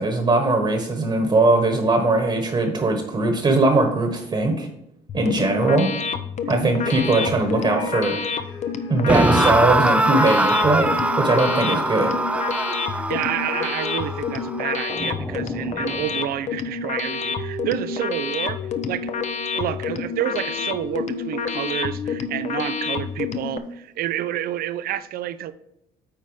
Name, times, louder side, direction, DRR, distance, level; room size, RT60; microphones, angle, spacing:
voice 1, 0.0-4.7 5.1-5.9 6.5-8.2 8.9-12.1, right 2 dB, 30° right, 4 dB, 1.4 m, -20 dB
sound 1, 5.1-23.6, left 6 dB, 45° left, 0.7 m, -29 dB
sound 2, 6.8-9.8 10.8-15.6 17.0-23.1, left 3 dB, 80° left, 2.9 m, -37 dB
sound 3, 9.1-16.2, right 1 dB, 5° right, 0.5 m, -23 dB
voice 2, 12.9-18.6 18.9-19.1 19.5-25.5, right 11 dB, 60° right, 13 dB, 0.5 m, -29 dB
9.4 x 4.1 x 4.9 m, 0.82 s
cardioid pair, 110°, 17 cm